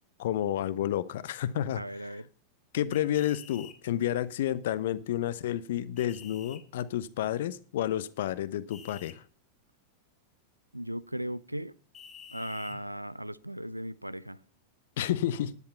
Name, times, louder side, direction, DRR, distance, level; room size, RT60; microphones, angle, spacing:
voice 1, 0.2-2.2 2.7-9.2 12.7-12.8 15.0-15.5, left 11 dB, 55° left, 0.8 m, -30 dB
voice 2, 1.8-2.3 10.7-11.8 12.3-14.4, equal, 90° right, 0.5 m, -37 dB
sound 1, 2.9-3.8 6.0-6.6 8.7-9.2 11.9-12.8, left 8 dB, 25° left, 2.2 m, -49 dB
10.5 x 10.5 x 5.6 m
figure-of-eight pair, 90°, 0 cm